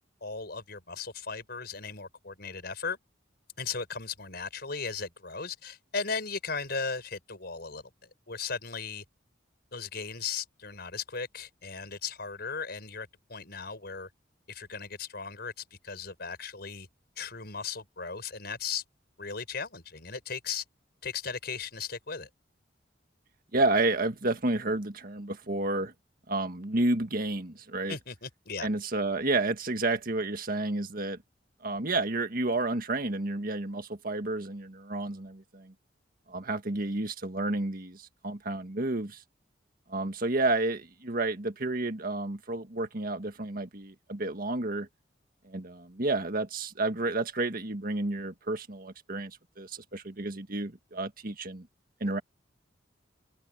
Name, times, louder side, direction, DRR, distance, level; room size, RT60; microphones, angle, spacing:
voice 1, 0.2-3.0 3.6-7.8 8.3-9.0 9.7-14.1 14.5-15.5 15.8-16.9 17.2-18.8 19.2-20.6 21.0-22.3 27.9-28.7, left 5 dB, 60° left, 5.8 m, -37 dB
voice 2, 23.5-25.9 26.3-28.0 28.6-31.2 31.6-35.7 36.3-39.2 39.9-44.9 45.4-51.7 52.0-52.2, right 2 dB, 50° right, 1.7 m, -30 dB
open air
head